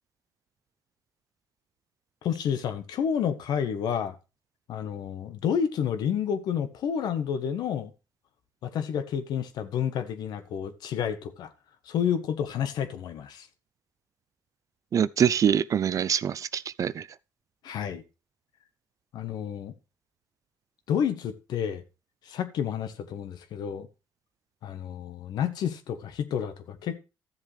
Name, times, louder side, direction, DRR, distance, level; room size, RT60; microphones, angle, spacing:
voice 1, 2.2-4.2 4.7-7.9 8.6-11.5 11.9-13.5 17.6-18.0 19.1-19.7 20.9-21.8 22.3-23.9 24.6-27.0, left 8 dB, 70° left, 1.1 m, -30 dB
voice 2, 14.9-17.1, right 8 dB, 50° right, 0.4 m, -24 dB
13.5 x 7.3 x 3.2 m
supercardioid pair, 70°, 7 cm